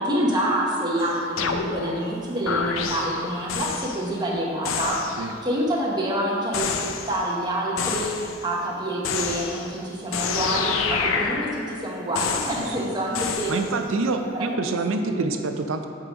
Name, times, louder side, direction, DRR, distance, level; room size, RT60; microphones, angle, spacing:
voice 1, 0.0-5.0 5.4-13.5 14.1-14.8 15.0-15.3, right 1 dB, 20° right, -3 dB, 1.1 m, -27 dB
sound 1, 1.0-2.1 2.5-4.1 4.7-5.4 6.5-7.3 7.8-8.5 9.0-9.8 10.1-11.8 12.2-12.9 13.1-13.8, left 6 dB, 85° left, 0.5 m, -28 dB
voice 2, 12.6-12.9 13.5-15.9, right 3 dB, 80° right, 7 dB, 0.5 m, -26 dB
7.6 x 3.8 x 4.9 m, 2.7 s
head